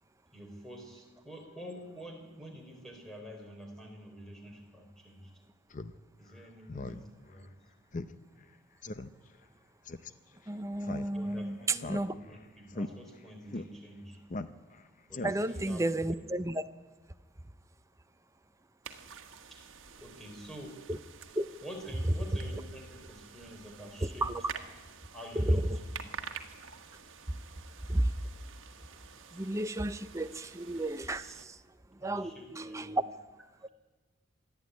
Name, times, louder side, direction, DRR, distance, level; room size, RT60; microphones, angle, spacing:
voice 1, 0.3-5.3 6.2-7.5 11.1-14.2 15.1-15.9 19.5-19.6 20.0-20.8 21.6-24.3 25.1-25.7 26.0-26.1 32.0-33.0, equal, ahead, 1 dB, 3.9 m, -47 dB
Speech synthesizer, 5.7-5.9 6.3-6.4 6.7-7.0 7.3-7.4 7.9-8.1 8.4-8.5 8.8-9.1 9.9-10.1 10.8-11.4 11.8-12.4 12.7-12.9 13.5-13.7 14.3-14.8 15.1-15.6, left 2 dB, 40° left, 0.6 m, -39 dB
voice 2, 10.5-12.1 15.2-16.6 20.9-21.0 21.4-21.5 24.0-24.4 25.3-25.7 27.9-28.1 29.3-31.6 32.0-33.0, right 1 dB, 15° right, 10 dB, 0.5 m, -32 dB
sound 1, 18.8-31.5, right 6 dB, 65° right, 1.6 m, -49 dB
26.0 x 10.5 x 9.3 m, 1.3 s
head